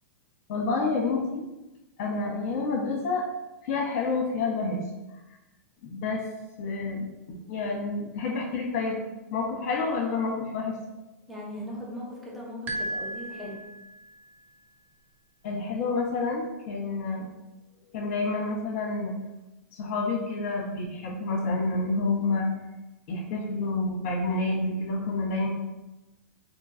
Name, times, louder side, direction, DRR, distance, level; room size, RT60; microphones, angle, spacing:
voice 1, 0.5-1.4 2.0-3.2 3.6-4.8 5.8-6.2 6.6-7.1 7.5-9.0 9.3-10.8 15.4-17.3 17.9-19.2 19.7-22.5 23.1-25.5, left 3 dB, 55° left, -1 dB, 1.2 m, -28 dB
voice 2, 11.3-13.6, equal, ahead, -5 dB, 0.9 m, -39 dB
sound 1, 12.7-14.2, right 1 dB, 25° right, 0.5 m, -35 dB
3.7 x 2.9 x 2.7 m, 1.0 s
hypercardioid pair, 120°, 8 cm